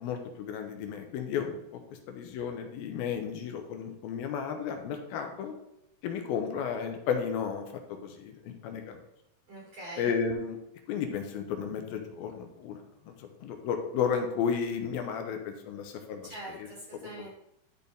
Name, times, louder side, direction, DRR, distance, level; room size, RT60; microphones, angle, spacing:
voice 1, 0.0-1.8 2.1-5.5 6.0-7.6 7.9-9.0 10.0-10.6 10.9-12.8 13.1-16.7, left 7 dB, 85° left, 5 dB, 2.7 m, -33 dB
voice 2, 9.5-10.1 16.2-17.3, right 2 dB, 50° right, -4 dB, 2.4 m, -43 dB
12.0 x 4.3 x 3.5 m, 0.82 s
omnidirectional pair, 4.3 m